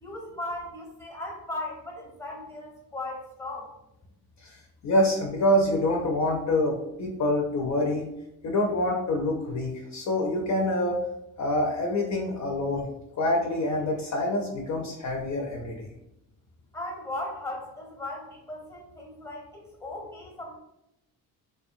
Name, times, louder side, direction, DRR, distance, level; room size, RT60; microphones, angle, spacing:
voice 1, 0.0-3.7 16.7-20.6, left 2 dB, 10° left, -1 dB, 0.7 m, -37 dB
voice 2, 4.4-8.1 8.4-11.0 11.4-12.9 13.1-15.9, left 1 dB, 50° left, 0 dB, 0.5 m, -26 dB
2.5 x 2.2 x 2.5 m, 0.87 s
cardioid pair, 95°, 37 cm